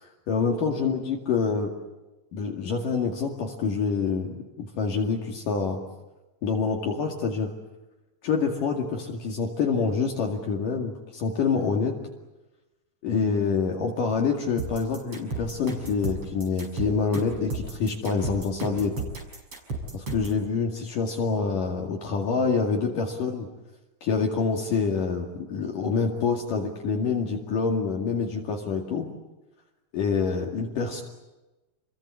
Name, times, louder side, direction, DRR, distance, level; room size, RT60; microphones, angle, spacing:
voice 1, 0.0-1.7 2.3-5.8 6.4-7.5 8.2-11.9 13.0-18.9 19.9-23.5 24.0-29.1 29.9-31.0, left 5 dB, 60° left, 1 dB, 3.7 m, -26 dB
sound 1, 14.6-20.4, right 2 dB, 35° right, 6.5 m, -33 dB
29.5 x 22.5 x 8.5 m, 1.1 s
omnidirectional pair, 4.5 m